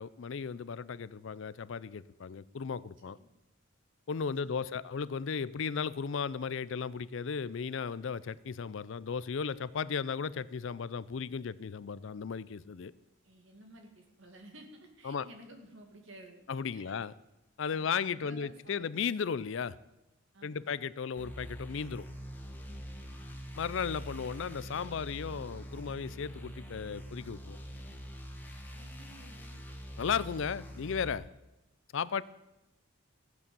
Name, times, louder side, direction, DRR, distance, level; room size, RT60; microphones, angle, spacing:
voice 1, 0.0-3.2 4.1-12.9 15.0-15.3 16.5-17.1 17.6-19.8 20.4-22.1 23.6-27.6 30.0-31.3 31.9-32.2, left 6 dB, 65° left, 19 dB, 0.4 m, -35 dB
voice 2, 13.2-16.4 16.7-17.0 17.7-19.1 20.3-20.7 22.7-23.0 28.7-29.7, right 1 dB, 60° right, 4 dB, 2.3 m, -54 dB
sound 1, 21.2-31.1, equal, 10° left, 1.3 m, -45 dB
15.5 x 8.4 x 6.9 m, 0.95 s
head